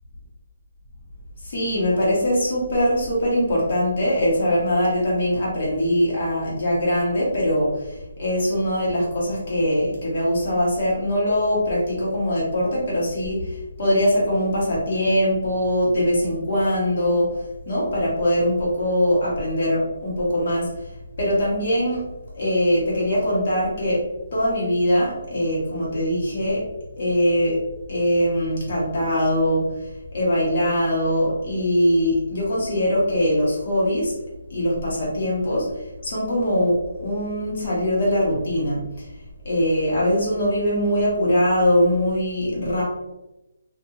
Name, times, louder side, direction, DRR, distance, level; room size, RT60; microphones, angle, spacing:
voice 1, 1.4-7.7 8.2-13.4 13.8-17.3 17.6-20.7 21.2-22.0 22.4-24.0 24.3-26.6 27.0-27.6 27.9-29.7 30.1-34.1 34.5-35.7 36.0-38.8 39.4-42.8, equal, 35° left, -6 dB, 1.3 m, -22 dB
4.1 x 2.6 x 2.8 m, 0.96 s
hypercardioid pair, 180°, 0 cm